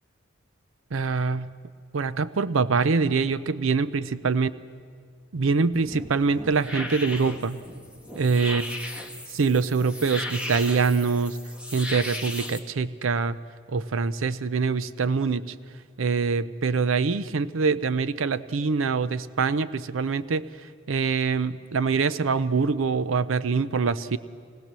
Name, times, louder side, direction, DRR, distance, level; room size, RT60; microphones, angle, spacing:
voice 1, 0.9-1.5 1.9-4.5 5.3-7.6 8.2-8.7 9.3-11.4 11.7-13.4 13.7-15.5 16.0-20.5 20.9-24.2, right 4 dB, 75° right, 15 dB, 0.6 m, -24 dB
sound 1, 5.7-12.6, left 1 dB, 5° right, 1.4 m, -36 dB
26.0 x 19.5 x 7.5 m, 2.1 s
head